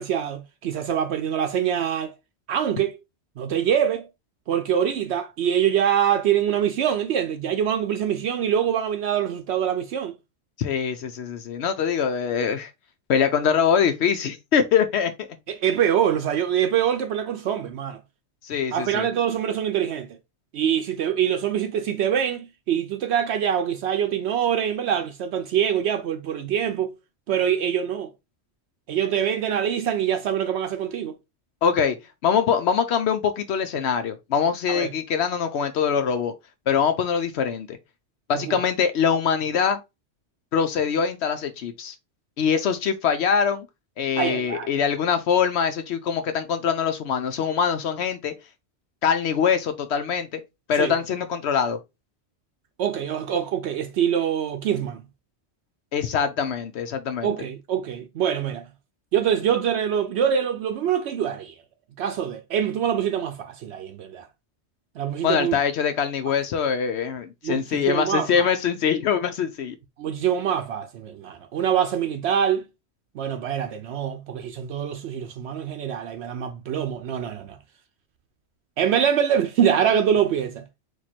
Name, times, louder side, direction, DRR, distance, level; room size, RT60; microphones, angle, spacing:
voice 1, 0.0-2.1 2.5-3.0 3.4-4.1 4.5-10.1 15.5-18.0 18.7-20.1 20.5-26.9 27.3-28.1 28.9-31.1 34.7-34.9 38.3-38.6 44.2-44.7 50.8-50.9 52.8-55.0 57.2-58.6 59.1-61.5 62.0-64.3 65.0-65.6 67.4-68.5 70.0-72.6 73.1-77.6 78.8-80.6, right 9 dB, 75° right, 0.8 m, -24 dB
voice 2, 10.6-12.7 13.1-15.3 18.4-19.1 31.6-32.0 32.2-36.3 36.7-37.8 38.3-39.8 40.5-41.9 42.4-43.6 44.0-48.3 49.0-50.4 50.7-51.8 55.9-57.3 65.2-69.7, left 7 dB, 75° left, 0.9 m, -23 dB
4.6 x 2.4 x 4.2 m
omnidirectional pair, 1.2 m